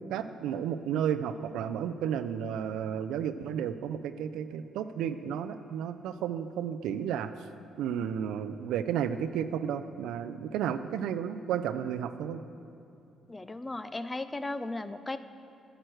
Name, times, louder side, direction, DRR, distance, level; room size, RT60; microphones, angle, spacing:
voice 1, 0.1-7.3 7.8-12.4, right 9 dB, 90° right, 10 dB, 0.3 m, -32 dB
voice 2, 13.3-15.2, left 2 dB, 20° left, 12 dB, 0.4 m, -36 dB
11.0 x 7.8 x 4.5 m, 2.5 s
cardioid pair, 90°, 0 cm